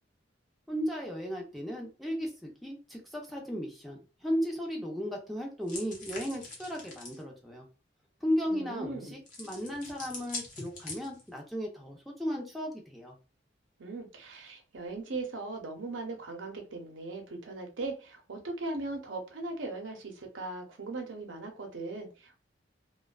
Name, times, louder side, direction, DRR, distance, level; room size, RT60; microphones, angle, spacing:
voice 1, 0.7-7.7 8.2-13.2, equal, ahead, 0.5 m, -35 dB
sound 1, 5.7-7.2 9.3-11.4, left 3 dB, 45° left, 0.8 m, -43 dB
voice 2, 8.5-9.2 13.8-22.4, right 3 dB, 85° right, 0.7 m, -39 dB
2.4 x 2.2 x 2.3 m
head